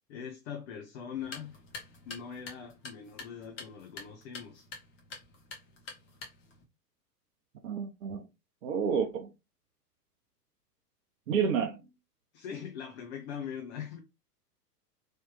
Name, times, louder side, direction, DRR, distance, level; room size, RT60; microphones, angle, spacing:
voice 1, 0.1-1.5 2.1-4.7 12.3-14.0, left 7 dB, 45° left, 0.8 m, -41 dB
sound 1, 1.1-6.6, left 3 dB, 25° left, 1.1 m, -47 dB
voice 2, 7.6-8.2 8.6-9.3 11.3-11.9, right 6 dB, 55° right, 0.7 m, -30 dB
3.2 x 3.0 x 3.1 m
figure-of-eight pair, 100°, 48 cm